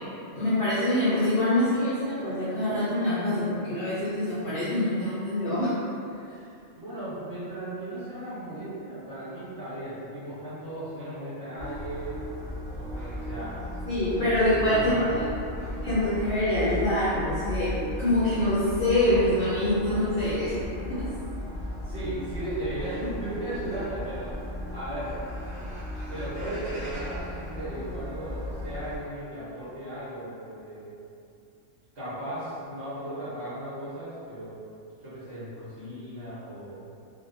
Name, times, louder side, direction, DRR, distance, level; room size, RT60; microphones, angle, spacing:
voice 1, 0.3-5.7 13.9-15.2 15.8-20.6, left 1 dB, 60° left, -12 dB, 0.7 m, -25 dB
voice 2, 6.7-12.2 12.5-13.6 14.2-15.6 21.8-25.1 26.1-30.9 31.9-34.6 35.0-36.9, right 1 dB, 60° right, -14 dB, 1.2 m, -36 dB
sound 1, 11.6-29.0, left 1 dB, 30° right, 1.3 m, -36 dB
2.6 x 2.1 x 2.5 m, 2.6 s
omnidirectional pair, 1.3 m